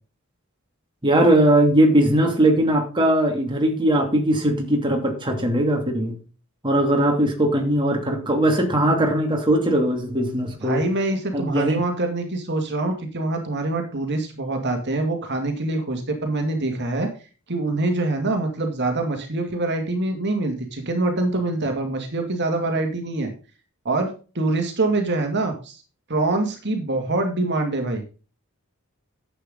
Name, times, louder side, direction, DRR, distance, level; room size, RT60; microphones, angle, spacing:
voice 1, 1.0-6.2 6.6-10.8 11.3-11.8, right 1 dB, 20° right, 2.7 m, -20 dB
voice 2, 10.6-17.1 17.5-23.3 23.8-25.8 26.1-28.0, right 2 dB, 50° right, 2.3 m, -25 dB
11.5 x 8.4 x 3.9 m
head